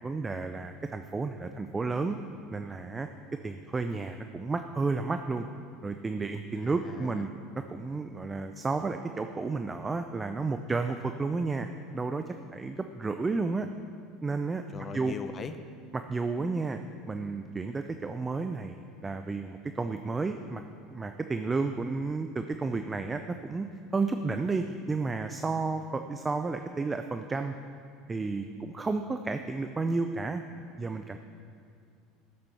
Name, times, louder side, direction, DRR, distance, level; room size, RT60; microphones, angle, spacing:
voice 1, 0.0-2.2 2.5-3.1 3.4-5.5 5.8-7.3 7.5-11.7 11.9-13.7 14.2-14.6 14.9-15.1 15.9-16.8 17.1-20.6 20.9-23.7 23.9-27.5 28.1-30.4 30.8-31.2, right 3 dB, 20° right, 7 dB, 0.5 m, -32 dB
voice 2, 6.6-7.2 14.7-15.6 16.4-16.7, left 5 dB, 30° left, 9 dB, 0.7 m, -41 dB
14.0 x 7.6 x 5.7 m, 2.3 s
supercardioid pair, 110°, 0 cm